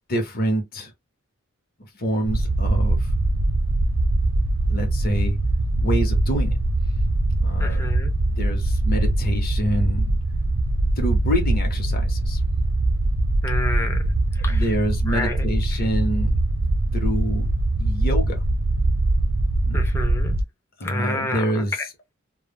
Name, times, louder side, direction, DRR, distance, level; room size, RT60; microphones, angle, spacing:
voice 1, 0.1-0.9 1.9-3.1 4.7-5.4 5.8-6.5 7.4-7.9 8.3-10.2 11.0-12.4 14.4-16.4 16.9-17.5 17.8-18.4 19.7-19.8 20.8-21.9, equal, 45° left, 0.8 m, -26 dB
sound 1, 2.2-20.4, right 2 dB, 75° right, 0.5 m, -22 dB
voice 2, 7.6-8.1 13.4-14.0 14.5-14.6 15.1-15.3 19.7-20.4 20.8-21.4, left 1 dB, 10° left, 0.4 m, -28 dB
2.2 x 2.1 x 3.3 m
head